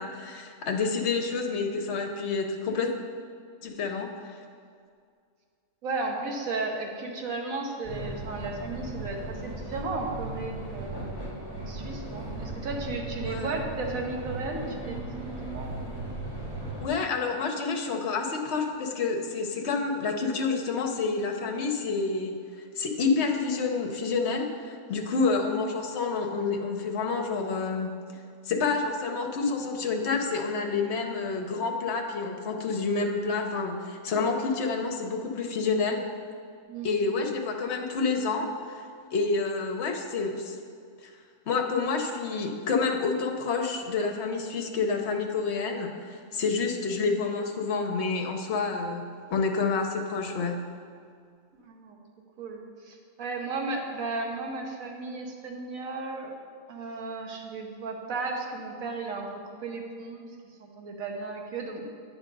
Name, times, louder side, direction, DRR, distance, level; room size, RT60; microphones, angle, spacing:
voice 1, 0.0-2.9 3.6-4.4 13.2-13.5 16.8-22.4 22.8-28.0 28.4-36.0 36.8-38.8 39.1-40.6 41.0-41.1 41.5-50.6, left 4 dB, 60° left, 3 dB, 0.9 m, -28 dB
voice 2, 5.8-15.9 36.6-37.3 51.6-52.0 52.4-56.4 56.7-60.2 60.6-61.8, right 3 dB, 75° right, 1 dB, 1.3 m, -35 dB
sound 1, 7.8-16.9, right 2 dB, 20° right, 1.2 m, -37 dB
9.4 x 3.5 x 5.2 m, 2.2 s
omnidirectional pair, 1.5 m